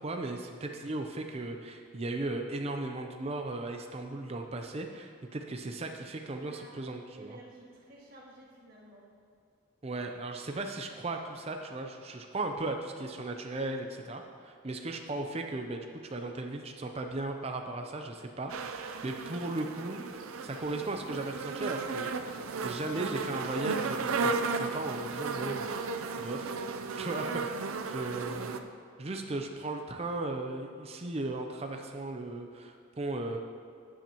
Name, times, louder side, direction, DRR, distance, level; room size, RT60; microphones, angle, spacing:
voice 1, 0.0-7.4 9.8-20.1 20.4-22.4 22.6-25.7 26.2-26.5 27.0-27.6 27.8-28.6 29.0-33.4, right 2 dB, 30° right, 4 dB, 0.5 m, -36 dB
voice 2, 6.4-9.1, right 1 dB, 45° right, -4 dB, 1.8 m, -53 dB
sound 1, 18.5-28.6, right 4 dB, 80° right, 0.5 m, -35 dB
12.0 x 8.9 x 2.9 m, 2.4 s
head